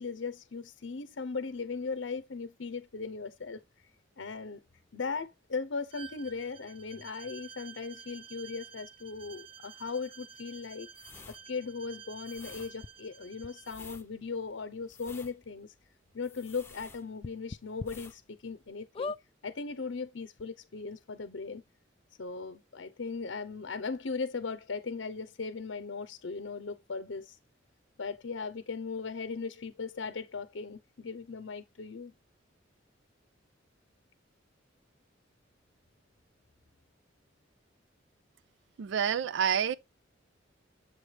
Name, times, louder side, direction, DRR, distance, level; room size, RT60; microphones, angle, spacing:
voice 1, 0.0-3.6 4.2-4.6 4.9-10.9 11.5-15.7 16.1-19.1 19.4-21.6 22.2-27.4 28.0-32.1, left 4 dB, 75° left, 0.7 m, -38 dB
Bowed string instrument, 5.9-13.8, right 7 dB, 30° right, 0.6 m, -51 dB
sound 1, 10.9-17.5 17.8-18.2 18.5-18.7, left 4 dB, 15° left, 0.8 m, -51 dB
sound 2, 12.8-12.9 13.4-13.5 14.5-14.6 14.9-15.0 15.4-15.5 17.2-17.9 18.4-18.5 18.9-19.2 20.1-20.2 20.4-20.5, left 4 dB, 30° left, 0.3 m, -38 dB
voice 2, 38.8-39.7, right 8 dB, 70° right, 0.4 m, -28 dB
7.3 x 3.2 x 4.5 m
head